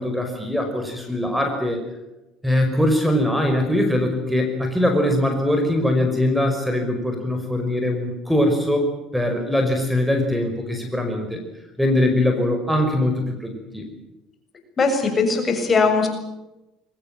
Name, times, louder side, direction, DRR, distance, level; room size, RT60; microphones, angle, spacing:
voice 1, 0.0-1.8 2.4-11.4 11.8-13.9, left 1 dB, 5° right, 5 dB, 5.5 m, -22 dB
voice 2, 14.8-16.1, left 4 dB, 30° left, 5 dB, 7.1 m, -19 dB
23.0 x 19.5 x 9.0 m, 0.98 s
hypercardioid pair, 75°, 0 cm